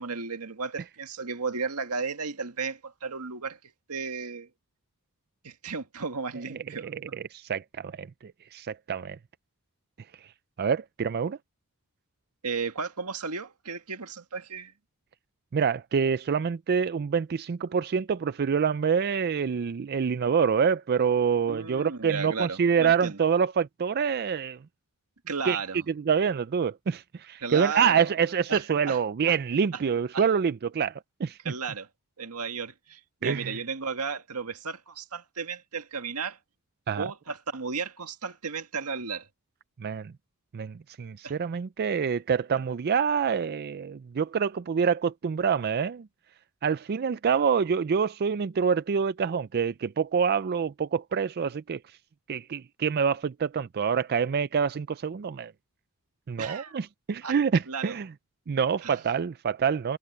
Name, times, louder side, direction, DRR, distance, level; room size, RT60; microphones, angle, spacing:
voice 1, 0.0-3.6 3.9-4.5 5.4-6.9 12.4-14.7 21.5-23.2 25.3-25.8 27.4-28.1 28.5-29.0 29.3-29.4 29.7-29.8 30.1-30.2 31.4-31.9 32.2-36.4 37.0-39.3 41.2-41.4 56.4-56.8 57.2-57.3 57.7-57.9 58.8-59.0, right 5 dB, 85° right, 1.8 m, -34 dB
voice 2, 6.8-9.2 10.6-11.4 15.5-24.6 25.5-25.6 25.9-31.4 33.2-33.6 36.9-37.1 39.8-40.1 40.5-46.1 46.6-51.8 52.3-55.5 56.3-58.1 58.5-60.0, right 6 dB, 45° right, 0.4 m, -26 dB
head